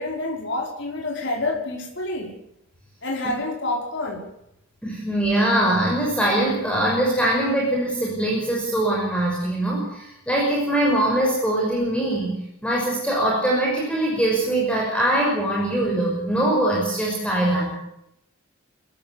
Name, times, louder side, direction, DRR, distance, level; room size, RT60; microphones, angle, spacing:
voice 1, 0.0-2.3 3.0-4.3, left 2 dB, 55° left, 0 dB, 5.2 m, -28 dB
voice 2, 4.8-17.7, right 1 dB, 5° left, -3 dB, 6.1 m, -22 dB
27.0 x 15.0 x 8.0 m, 0.80 s
head